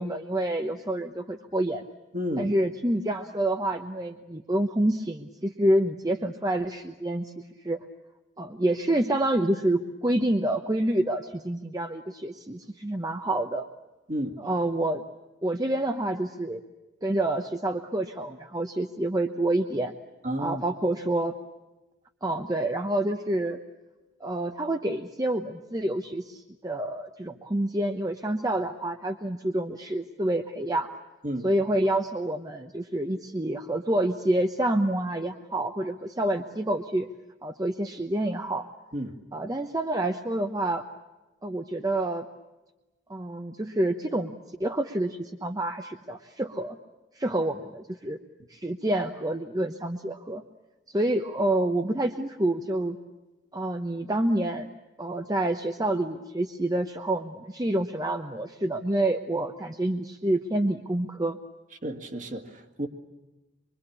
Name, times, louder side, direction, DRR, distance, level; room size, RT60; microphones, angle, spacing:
voice 1, 0.0-1.8 2.4-7.3 7.6-7.8 8.4-13.7 14.4-15.0 15.4-16.6 17.0-19.9 20.4-21.3 22.2-23.6 24.2-31.0 31.4-37.1 37.4-38.7 39.3-40.8 41.4-42.2 43.1-46.8 47.2-48.2 48.5-50.4 50.9-53.0 53.5-54.7 55.0-61.4, right 1 dB, 20° right, 5 dB, 0.9 m, -28 dB
voice 2, 2.1-2.5 14.1-14.4 20.2-20.6 31.2-31.5 38.9-39.1 61.8-62.9, equal, 40° right, 5 dB, 2.1 m, -31 dB
25.0 x 24.0 x 8.6 m, 1.1 s
head